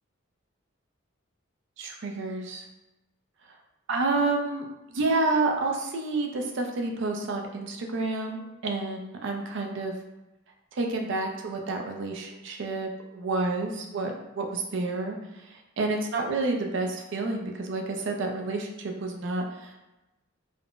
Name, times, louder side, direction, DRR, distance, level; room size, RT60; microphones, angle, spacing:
voice 1, 1.8-2.6 3.9-9.9 10.7-15.2 15.8-19.8, right 3 dB, 65° right, 2 dB, 0.4 m, -29 dB
3.5 x 2.1 x 2.4 m, 0.99 s
head